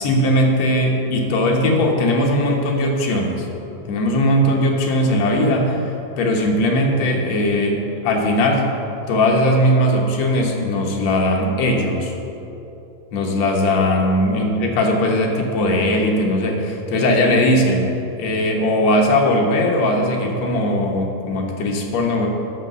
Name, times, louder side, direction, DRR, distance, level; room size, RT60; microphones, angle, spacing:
voice 1, 0.0-3.5 3.9-5.9 6.2-8.7 9.1-12.1 13.1-17.9 18.2-22.3, left 1 dB, 65° left, 0 dB, 2.0 m, -19 dB
12.0 x 5.1 x 6.7 m, 3.0 s
omnidirectional pair, 3.9 m